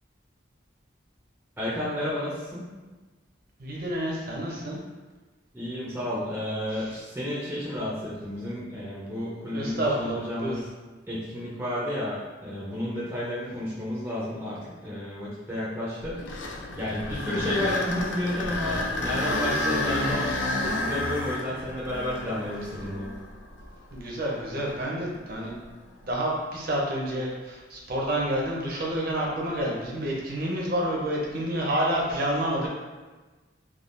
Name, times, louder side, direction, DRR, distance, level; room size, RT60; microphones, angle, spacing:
voice 1, 1.6-2.7 5.5-10.6 11.1-16.4 16.8-23.1, left 1 dB, 10° right, -8 dB, 0.5 m, -32 dB
voice 2, 3.6-4.8 6.7-6.9 9.5-10.6 23.9-25.6 26.0-32.7, right 1 dB, 50° right, -3 dB, 0.7 m, -29 dB
sound 1, 16.0-24.1 24.7-24.8 25.5-25.6 29.1-29.5, left 2 dB, 75° left, 0.4 m, -30 dB
3.5 x 2.3 x 2.5 m, 1.3 s
head